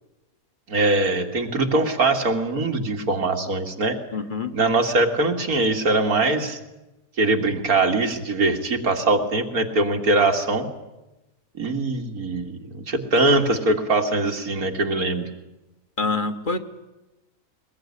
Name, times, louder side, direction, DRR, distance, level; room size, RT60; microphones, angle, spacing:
voice 1, 0.7-4.0 4.5-6.6 7.2-10.7 11.6-15.3, right 2 dB, 85° right, 4 dB, 2.8 m, -22 dB
voice 2, 4.1-4.5 16.0-16.6, left 3 dB, 35° left, 7 dB, 1.4 m, -25 dB
22.0 x 21.0 x 10.0 m, 1.0 s
omnidirectional pair, 1.5 m